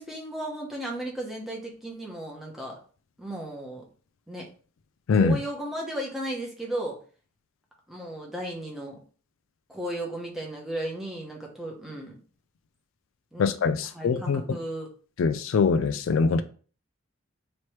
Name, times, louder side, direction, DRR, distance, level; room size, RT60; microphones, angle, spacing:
voice 1, 0.0-2.8 3.2-3.8 4.3-4.5 5.1-7.0 7.9-9.0 9.7-12.2 13.3-13.4 13.8-14.9, right 1 dB, ahead, 0.9 m, -35 dB
voice 2, 13.4-14.4 15.2-16.4, left 5 dB, 75° left, 0.4 m, -23 dB
3.2 x 2.9 x 4.4 m
head